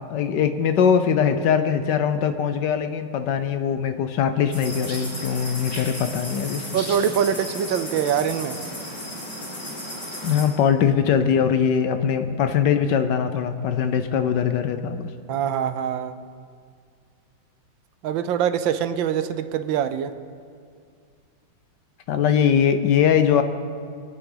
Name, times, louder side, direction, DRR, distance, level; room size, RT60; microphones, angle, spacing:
voice 1, 0.1-6.7 10.2-15.1 22.1-23.4, left 7 dB, 70° left, 9 dB, 1.3 m, -21 dB
sound 1, 4.5-10.5, left 1 dB, 40° left, 4.3 m, -34 dB
voice 2, 6.7-8.6 15.3-16.2 18.0-20.1, right 8 dB, 80° right, 11 dB, 1.4 m, -24 dB
25.0 x 9.8 x 3.9 m, 2.2 s
omnidirectional pair, 2.1 m